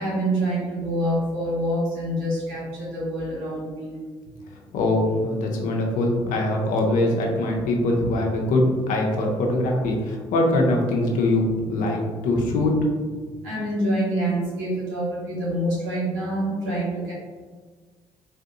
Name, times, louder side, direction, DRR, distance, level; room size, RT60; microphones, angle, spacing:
voice 1, 0.0-4.0 13.4-17.1, right 1 dB, 80° right, -8 dB, 1.4 m, -26 dB
voice 2, 4.7-12.8, left 1 dB, 65° left, 0 dB, 0.7 m, -22 dB
4.2 x 2.6 x 2.6 m, 1.5 s
hypercardioid pair, 50°, 14 cm